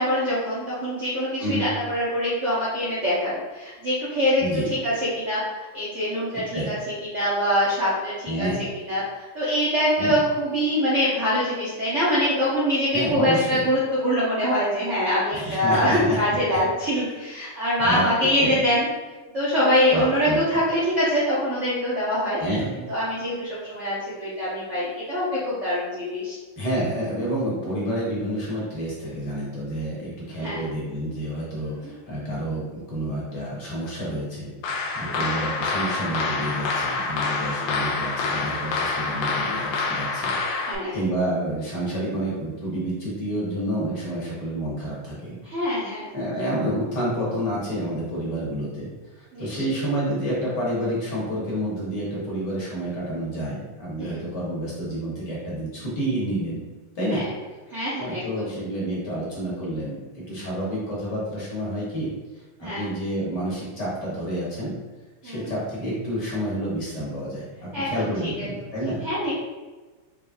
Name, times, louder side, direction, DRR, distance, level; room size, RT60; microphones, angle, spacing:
voice 1, 0.0-6.8 7.0-8.5 8.8-18.9 19.3-22.5 22.9-26.4 30.4-30.6 31.8-31.9 35.0-35.3 37.6-37.8 40.5-41.0 45.4-46.1 49.3-49.6 54.0-54.3 57.1-57.3 57.7-58.5 62.6-62.9 65.2-65.5 67.7-68.5 69.0-69.3, equal, 50° right, -10 dB, 0.9 m, -24 dB
voice 2, 4.4-4.7 6.3-6.7 8.2-8.6 10.0-10.2 12.9-13.6 15.3-16.2 16.5-16.6 16.9-17.1 17.4-17.6 17.8-18.6 19.9-20.4 22.4-22.8 26.6-40.3 40.6-45.4 46.1-56.6 56.9-57.2 58.0-64.7 65.2-69.0, right 1 dB, 55° left, -6 dB, 1.6 m, -29 dB
sound 1, 34.6-40.7, left 3 dB, 80° left, 1.4 m, -27 dB
4.6 x 3.3 x 2.6 m, 1.3 s
omnidirectional pair, 2.4 m